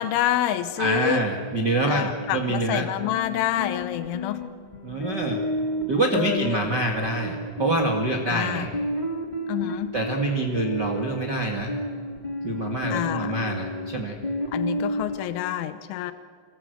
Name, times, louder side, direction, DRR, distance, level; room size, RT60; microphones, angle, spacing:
voice 1, 0.0-1.2 1.8-4.5 6.1-6.7 8.3-8.7 9.5-9.9 12.9-13.3 14.5-16.1, left 12 dB, 90° left, 11 dB, 3.3 m, -27 dB
sound 1, 0.8-15.2, equal, 35° left, 0.6 m, -32 dB
voice 2, 0.8-2.9 4.8-5.4 5.9-8.7 9.9-11.7 12.4-14.2, right 2 dB, 85° right, 1 dB, 0.9 m, -26 dB
27.0 x 21.5 x 8.0 m, 2.1 s
omnidirectional pair, 5.3 m